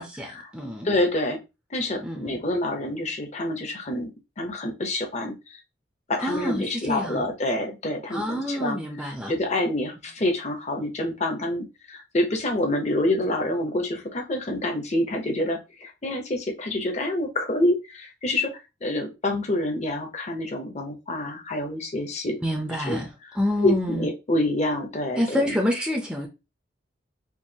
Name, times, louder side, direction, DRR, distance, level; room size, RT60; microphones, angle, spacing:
voice 1, 0.0-0.9 2.0-2.4 6.2-7.3 8.1-9.4 22.4-24.1 25.2-26.3, left 1 dB, 5° right, 0.6 m, -28 dB
voice 2, 0.8-1.4 1.7-4.1 4.4-5.6 6.1-8.8 9.3-22.4 22.9-23.0 23.6-25.4, left 1 dB, 35° left, 0.8 m, -27 dB
4.6 x 2.5 x 2.8 m
head